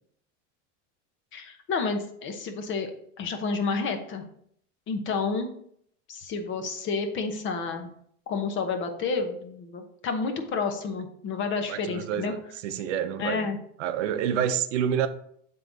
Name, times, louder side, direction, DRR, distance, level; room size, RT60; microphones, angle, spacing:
voice 1, 1.3-2.9 3.2-4.2 4.9-5.5 6.1-7.9 8.3-12.3 13.2-13.6, left 4 dB, 35° left, 6 dB, 0.9 m, -30 dB
voice 2, 11.7-13.5 13.8-15.1, right 9 dB, 80° right, 10 dB, 0.7 m, -28 dB
7.6 x 3.8 x 4.0 m, 0.67 s
supercardioid pair, 140°, 36 cm